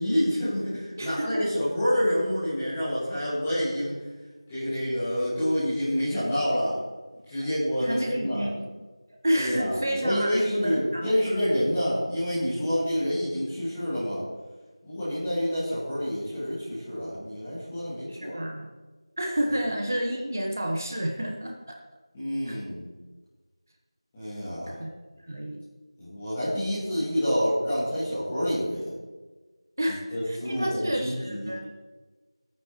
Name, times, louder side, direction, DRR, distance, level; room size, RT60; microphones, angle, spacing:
voice 1, 0.0-4.0 4.5-6.8 7.3-8.5 9.3-14.2 14.8-18.4 22.1-22.8 24.1-24.8 26.0-28.9 30.1-31.5, equal, 10° left, -12 dB, 1.7 m, -28 dB
voice 2, 1.0-1.4 7.3-7.5 7.8-8.8 9.2-11.1 18.1-18.7 19.2-21.8 22.5-22.6 24.7-24.9 25.2-25.6 29.8-31.7, equal, 35° right, 1 dB, 1.1 m, -30 dB
15.0 x 9.0 x 3.0 m, 1.3 s
figure-of-eight pair, 175°, 3 cm